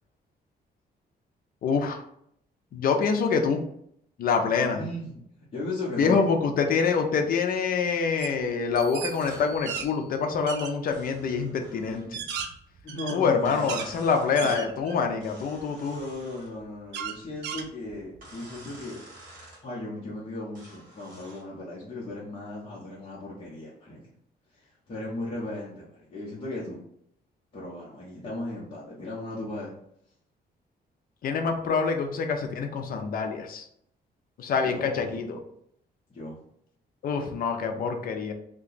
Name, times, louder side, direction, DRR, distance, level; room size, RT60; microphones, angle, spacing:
voice 1, 1.6-2.0 2.7-3.6 4.2-4.8 6.0-12.2 13.1-16.0 31.2-33.7 34.4-35.4 37.0-38.3, left 5 dB, 55° left, 5 dB, 0.5 m, -26 dB
voice 2, 4.7-5.1 5.5-6.2 12.8-13.8 14.4-14.6 15.9-19.0 19.6-24.0 24.5-26.8 27.5-29.8 34.6-35.2 36.1-36.4, left 1 dB, 30° left, -6 dB, 0.8 m, -36 dB
sound 1, 8.2-8.4 8.7-9.9 10.5-10.7 11.4-11.5 11.9-13.9 14.4-15.1 15.6-15.7 16.9-18.2, right 7 dB, 90° right, 0.4 m, -35 dB
sound 2, 8.7-10.7, left 1 dB, 25° right, 0.6 m, -48 dB
sound 3, 9.2-9.5 10.9-12.1 13.4-14.3 15.2-16.5 18.2-19.6 20.5-21.5, right 1 dB, 50° right, 1.3 m, -49 dB
2.8 x 2.3 x 3.9 m, 0.70 s
cardioid pair, 150°, 18 cm